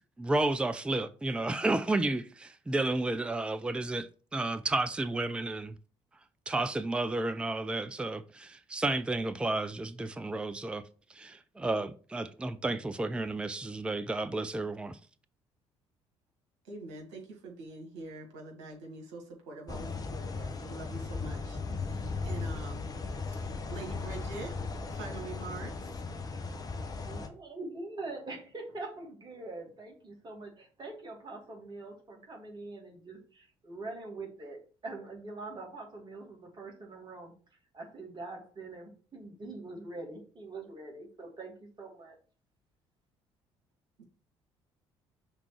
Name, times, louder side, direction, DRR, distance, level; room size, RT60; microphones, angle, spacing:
voice 1, 0.2-5.7 6.5-10.8 11.1-15.0, right 2 dB, 5° right, 0.4 m, -32 dB
voice 2, 16.6-22.9 23.4-24.5 24.9-26.0 44.0-44.1, right 3 dB, 65° right, 1.9 m, -45 dB
sound 1, 19.7-27.3, left 4 dB, 25° left, 0.9 m, -37 dB
voice 3, 27.1-37.3 37.7-42.2, right 2 dB, 30° right, 2.5 m, -44 dB
5.9 x 3.6 x 4.6 m
figure-of-eight pair, 50°, 14 cm